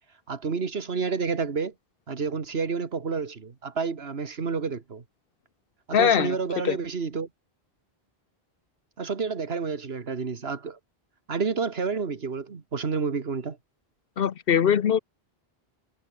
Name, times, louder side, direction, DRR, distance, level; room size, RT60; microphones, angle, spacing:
voice 1, 0.3-1.7 2.1-5.0 5.9-7.3 9.0-10.8 11.3-13.6, right 5 dB, 75° right, 1.9 m, -29 dB
voice 2, 5.9-6.4 6.6-6.8 14.2-15.0, left 8 dB, 65° left, 0.9 m, -21 dB
omnidirectional pair, 1.1 m